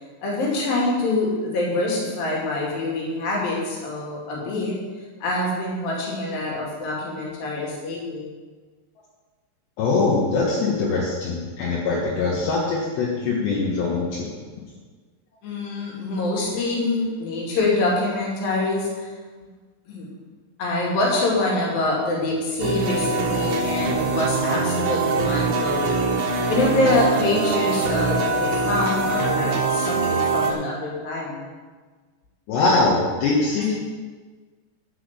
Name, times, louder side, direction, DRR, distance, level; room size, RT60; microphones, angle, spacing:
voice 1, 0.2-4.7 5.2-8.3 15.4-19.1 19.9-20.1 20.6-26.0 26.5-31.4, left 2 dB, 55° left, -3 dB, 4.0 m, -25 dB
voice 2, 9.8-14.3 32.5-33.9, left 3 dB, 70° left, -5 dB, 3.6 m, -22 dB
sound 1, 22.6-30.5, right 4 dB, 75° right, 3.6 m, -23 dB
12.5 x 6.2 x 6.8 m, 1.4 s
omnidirectional pair, 5.3 m